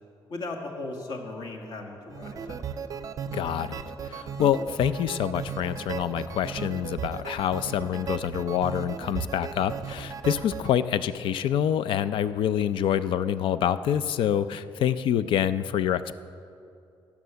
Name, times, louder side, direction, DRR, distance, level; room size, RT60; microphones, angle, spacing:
voice 1, 0.3-2.7, left 2 dB, 55° left, 2 dB, 1.6 m, -37 dB
sound 1, 2.1-10.7, right 6 dB, 40° right, 0.5 m, -36 dB
voice 2, 3.3-16.1, left 9 dB, 75° left, 14 dB, 0.5 m, -26 dB
17.5 x 7.2 x 6.8 m, 2.6 s
cardioid pair, 175°, 9 cm